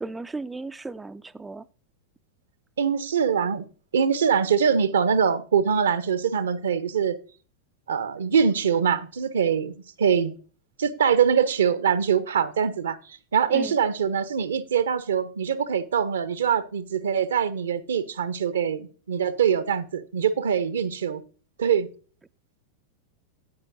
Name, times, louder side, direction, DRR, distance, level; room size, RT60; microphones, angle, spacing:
voice 1, 0.0-1.6 13.5-13.7, right 3 dB, 10° right, 0.3 m, -35 dB
voice 2, 2.8-3.7 3.9-7.2 7.9-10.3 10.8-21.2 21.6-21.9, right 7 dB, 65° right, 0.7 m, -23 dB
9.6 x 8.8 x 2.6 m
figure-of-eight pair, 90°, 0 cm